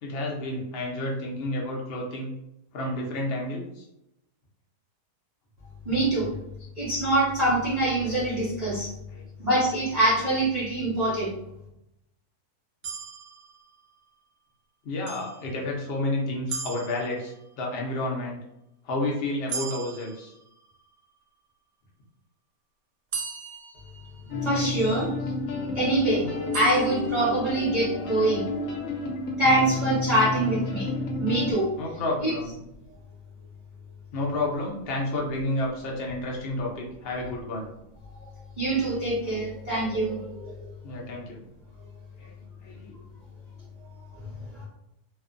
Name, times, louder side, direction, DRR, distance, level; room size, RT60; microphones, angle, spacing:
voice 1, 0.0-2.3 2.7-3.9 9.1-9.3 14.8-18.4 18.8-20.3 31.8-32.6 34.1-37.7 40.8-41.4 42.2-42.3 42.6-42.9, left 2 dB, 60° left, -2 dB, 0.6 m, -30 dB
voice 2, 5.8-6.3 6.8-8.9 9.4-11.3 24.4-25.1 25.7-28.6 29.4-30.9 31.2-31.7 32.2-32.3 38.6-40.6 44.5-44.7, right 1 dB, 40° right, -9 dB, 0.6 m, -24 dB
sound 1, 12.8-14.2 15.1-16.0 16.5-17.7 19.5-21.0 23.1-24.7 26.5-27.7, right 6 dB, 70° right, 0.9 m, -39 dB
sound 2, 24.3-31.5, left 2 dB, 75° left, 1.0 m, -31 dB
2.5 x 2.2 x 2.5 m, 0.83 s
omnidirectional pair, 1.6 m